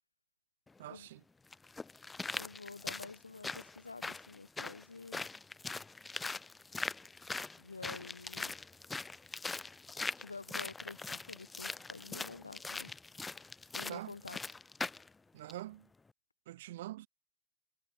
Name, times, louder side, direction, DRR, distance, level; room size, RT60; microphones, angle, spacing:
sound 1, 0.7-0.8 1.5-15.1 15.5-15.6, left 3 dB, 10° left, 0.7 m, -42 dB
voice 1, 0.8-1.2 13.9-14.2 15.3-15.9 16.5-17.1, right 15 dB, 55° right, 0.7 m, -45 dB
voice 2, 2.3-5.3 7.6-8.5 10.2-12.9 13.7-14.4, left 4 dB, 80° left, 0.7 m, -49 dB
figure-of-eight pair, 90°, 0 cm